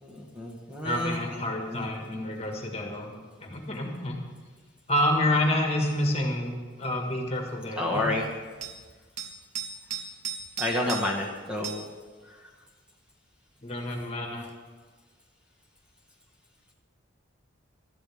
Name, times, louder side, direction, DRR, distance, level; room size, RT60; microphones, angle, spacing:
voice 1, 0.0-1.2 1.7-1.8 7.8-8.2 10.6-11.8, left 1 dB, 5° right, -2 dB, 1.6 m, -29 dB
voice 2, 0.8-3.1 3.4-4.2 4.9-8.1 13.6-14.5, left 1 dB, 30° left, 1 dB, 1.8 m, -28 dB
sound 1, 5.8-6.0 8.6-8.8 9.2-11.3 11.6-11.9 14.4-14.5, right 6 dB, 35° right, 1.0 m, -37 dB
19.5 x 13.0 x 3.6 m, 1.5 s
head